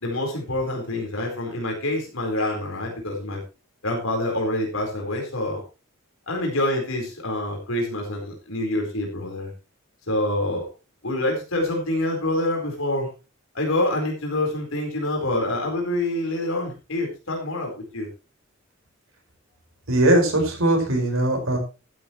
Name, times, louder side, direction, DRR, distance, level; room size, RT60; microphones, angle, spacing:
voice 1, 0.0-3.4 3.8-5.6 6.3-9.5 10.1-10.6 11.0-13.1 13.5-18.1, left 1 dB, 75° left, 1 dB, 4.3 m, -26 dB
voice 2, 19.9-21.6, right 1 dB, 80° right, 2 dB, 5.1 m, -20 dB
12.5 x 12.5 x 3.1 m, 0.30 s
head